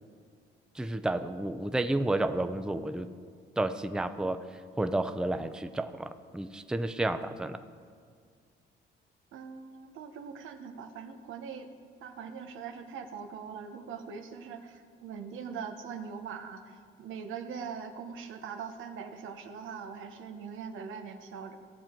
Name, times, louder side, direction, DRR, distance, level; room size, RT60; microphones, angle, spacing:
voice 1, 0.7-3.1 3.6-7.6, right 2 dB, 5° right, 9 dB, 0.5 m, -31 dB
voice 2, 9.3-11.7 12.0-21.6, right 6 dB, 85° right, 7 dB, 1.0 m, -42 dB
16.0 x 7.5 x 4.5 m, 2.1 s
cardioid pair, 90°, 20 cm